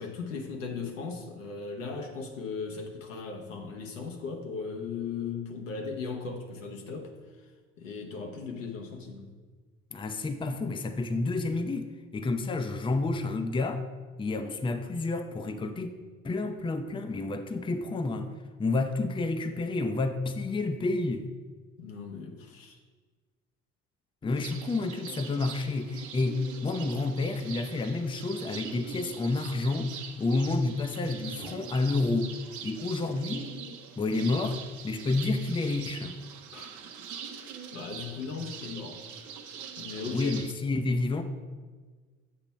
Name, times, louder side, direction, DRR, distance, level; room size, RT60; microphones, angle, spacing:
voice 1, 0.0-7.1 7.8-9.3 21.8-22.8 24.2-24.3 36.5-36.7 37.7-39.0 39.4-40.4, left 5 dB, 85° left, 1 dB, 0.9 m, -37 dB
voice 2, 9.9-13.8 14.2-16.0 16.2-18.3 18.6-21.3 24.2-29.9 30.2-32.3 32.6-33.5 34.0-36.2 40.1-41.2, left 3 dB, 15° left, 7 dB, 0.5 m, -29 dB
sound 1, 24.4-40.5, right 7 dB, 50° right, 0.8 m, -43 dB
7.6 x 3.0 x 5.5 m, 1.4 s
hypercardioid pair, 60°, 38 cm